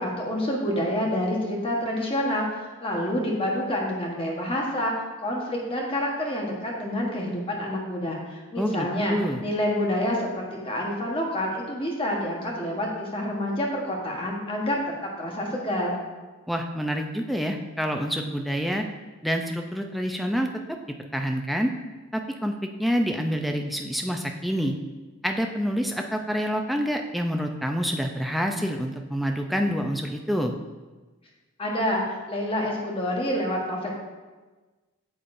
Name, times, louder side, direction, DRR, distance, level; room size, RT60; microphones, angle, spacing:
voice 1, 0.0-4.9 5.2-14.8 15.2-16.0 31.6-33.9, left 1 dB, 25° left, -1 dB, 1.2 m, -28 dB
voice 2, 8.6-9.4 16.5-18.9 19.2-20.8 21.1-21.7 22.1-22.5 22.8-24.7 25.2-30.5, equal, ahead, 3 dB, 0.4 m, -27 dB
8.5 x 6.7 x 2.6 m, 1.3 s
head